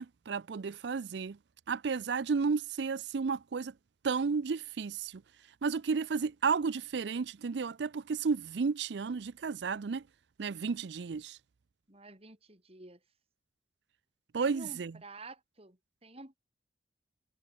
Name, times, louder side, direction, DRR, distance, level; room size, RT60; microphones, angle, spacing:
voice 1, 0.0-1.4 1.7-3.7 4.0-5.2 5.6-10.0 10.4-11.4 14.3-14.9, right 5 dB, 70° right, 0.5 m, -32 dB
voice 2, 11.9-13.0 14.4-16.4, right 2 dB, 35° right, 4.8 m, -50 dB
head